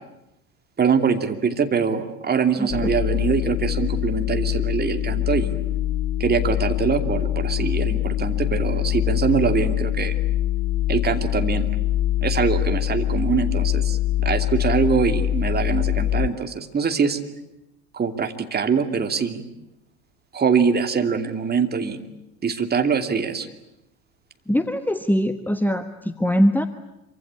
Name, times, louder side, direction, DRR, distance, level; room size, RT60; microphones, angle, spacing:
voice 1, 0.8-5.5 6.2-10.1 10.9-11.7 12.2-17.2 17.9-19.5 20.3-22.0 22.4-23.5, right 6 dB, 25° right, 6 dB, 2.6 m, -23 dB
voice 2, 2.6-2.9 24.5-26.7, equal, 5° left, 10 dB, 1.2 m, -22 dB
sound 1, 2.7-16.3, left 13 dB, 55° left, 1.0 m, -24 dB
26.5 x 24.5 x 8.7 m, 0.89 s
figure-of-eight pair, 70°, 41 cm